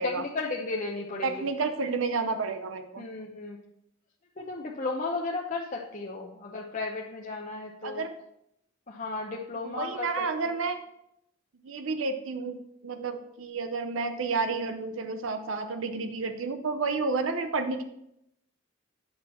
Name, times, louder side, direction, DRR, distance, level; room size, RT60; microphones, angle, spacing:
voice 1, 0.0-1.3 3.0-3.6 4.4-8.0 8.9-10.3, left 3 dB, 40° left, -1 dB, 0.7 m, -34 dB
voice 2, 1.2-3.0 7.8-8.1 9.6-10.8 11.6-17.8, right 4 dB, 75° right, 8 dB, 0.7 m, -31 dB
8.6 x 5.8 x 4.3 m, 0.80 s
head